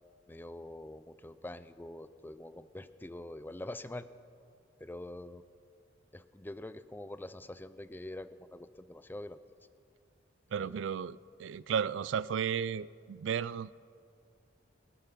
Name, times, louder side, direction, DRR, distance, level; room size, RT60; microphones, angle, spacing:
voice 1, 0.3-4.1 4.8-5.4 6.1-9.4 10.6-10.8, left 1 dB, 10° left, 14 dB, 0.4 m, -45 dB
voice 2, 10.5-13.8, right 7 dB, 70° right, 19 dB, 0.3 m, -34 dB
21.5 x 9.2 x 5.8 m, 2.3 s
head